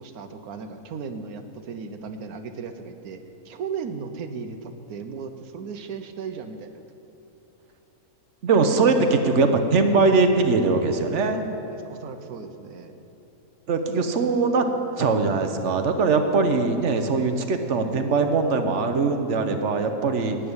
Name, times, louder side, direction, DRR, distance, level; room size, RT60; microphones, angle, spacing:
voice 1, 0.0-6.7 8.7-9.1 11.7-13.0, right 5 dB, 80° right, 8 dB, 1.3 m, -36 dB
voice 2, 8.4-11.5 13.7-14.7 15.0-20.4, right 4 dB, 55° right, 6 dB, 1.1 m, -21 dB
10.5 x 9.0 x 8.8 m, 3.0 s
omnidirectional pair, 1.6 m